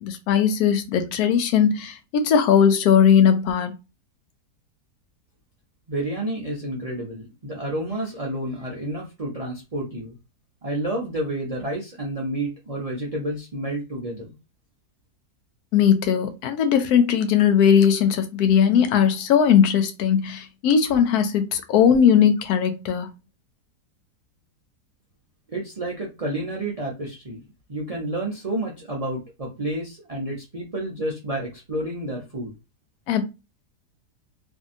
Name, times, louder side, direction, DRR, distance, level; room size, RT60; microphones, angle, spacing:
voice 1, 0.0-3.7 15.7-23.1 33.1-33.2, left 8 dB, 75° left, 1.1 m, -19 dB
voice 2, 5.9-10.2 10.6-14.3 25.5-27.4 27.7-32.5, right 1 dB, 70° right, 0.3 m, -30 dB
2.8 x 2.6 x 2.5 m
omnidirectional pair, 1.7 m